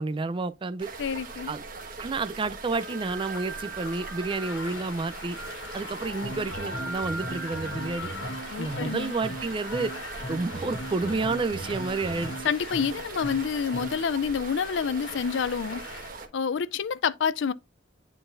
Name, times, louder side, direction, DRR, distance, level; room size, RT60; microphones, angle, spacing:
voice 1, 0.0-0.9 1.5-1.6 2.0-5.4 5.7-8.1 8.6-9.9 10.3-12.5, right 3 dB, 25° right, 0.4 m, -30 dB
sound 1, 0.8-16.3, right 3 dB, 50° right, 1.2 m, -41 dB
voice 2, 1.0-1.5 8.5-9.2 12.4-15.8 16.3-17.5, left 6 dB, 70° left, 0.4 m, -28 dB
sound 2, 2.7-16.1, left 2 dB, 85° left, 1.5 m, -41 dB
sound 3, 6.2-14.1, right 1 dB, 50° left, 1.4 m, -38 dB
10.0 x 3.9 x 2.5 m
head